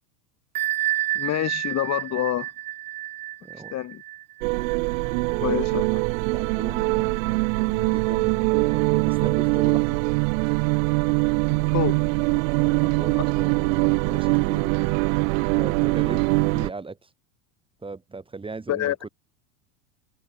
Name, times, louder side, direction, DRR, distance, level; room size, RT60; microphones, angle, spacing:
Bell, 0.5-6.0, right 15 dB, 90° right, 1.4 m, -30 dB
voice 1, 1.1-2.5 3.7-4.0 5.4-6.0 11.7-12.0 13.2-13.3 18.7-19.0, left 13 dB, 40° left, 3.5 m, -27 dB
voice 2, 3.4-3.7 5.2-5.9 6.3-10.0 12.5-14.9 15.5-16.2 16.5-17.1 17.8-19.1, right 3 dB, 10° right, 3.6 m, -38 dB
sound 1, 4.4-16.7, right 31 dB, 60° right, 2.0 m, -23 dB
supercardioid pair, 115°, 43 cm